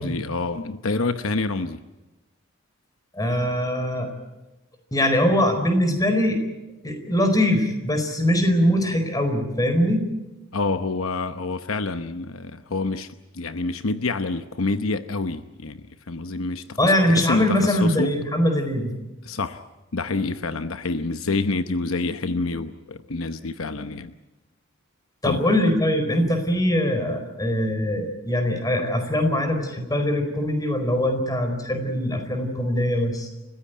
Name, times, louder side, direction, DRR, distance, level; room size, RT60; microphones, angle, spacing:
voice 1, 0.0-1.8 10.5-15.8 16.1-18.1 19.2-19.6 19.9-24.1 25.2-25.4, left 3 dB, 75° left, 9 dB, 1.0 m, -27 dB
voice 2, 3.1-4.1 4.9-6.4 6.8-10.1 16.8-18.9 25.2-33.3, left 1 dB, 20° left, 6 dB, 4.6 m, -22 dB
30.0 x 15.5 x 9.3 m, 1.1 s
head